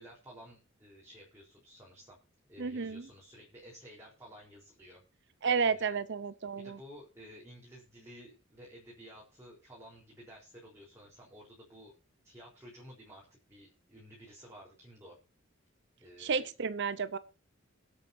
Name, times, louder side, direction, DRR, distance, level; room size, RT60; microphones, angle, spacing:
voice 1, 0.0-2.2 2.5-5.0 5.5-6.0 6.6-11.9 12.2-15.2 16.0-16.5, equal, 15° right, 4.0 m, -53 dB
voice 2, 2.6-3.0 5.4-6.8 16.2-17.2, right 5 dB, 60° right, 0.8 m, -31 dB
22.5 x 8.3 x 2.7 m
head